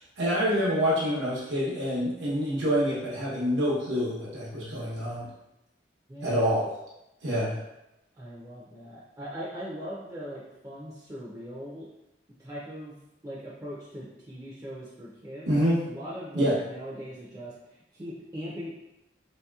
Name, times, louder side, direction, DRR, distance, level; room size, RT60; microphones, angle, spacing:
voice 1, 0.2-5.3 6.2-6.7 7.2-7.6 15.5-15.8 16.3-16.6, equal, 85° right, -7 dB, 0.8 m, -26 dB
voice 2, 6.1-6.4 8.1-11.9 12.4-13.0 13.2-15.5 15.9-18.7, equal, 20° right, -6 dB, 0.4 m, -40 dB
3.0 x 2.8 x 2.3 m, 0.89 s
head